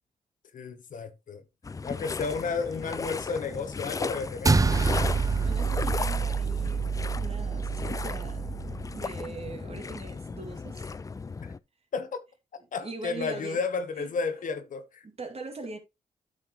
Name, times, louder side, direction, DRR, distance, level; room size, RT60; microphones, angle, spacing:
voice 1, 0.5-1.4 1.8-4.6 11.4-11.5 11.9-12.2 12.7-15.0, left 4 dB, 65° left, 1.0 m, -32 dB
sound 1, 1.6-11.6, left 4 dB, 25° left, 0.4 m, -36 dB
sound 2, 4.4-9.0, right 4 dB, 25° right, 0.7 m, -27 dB
voice 2, 5.4-11.0 12.8-13.6 14.0-14.1 15.0-15.8, right 3 dB, 45° right, 2.4 m, -41 dB
8.9 x 6.6 x 3.0 m
cardioid pair, 60°, 14 cm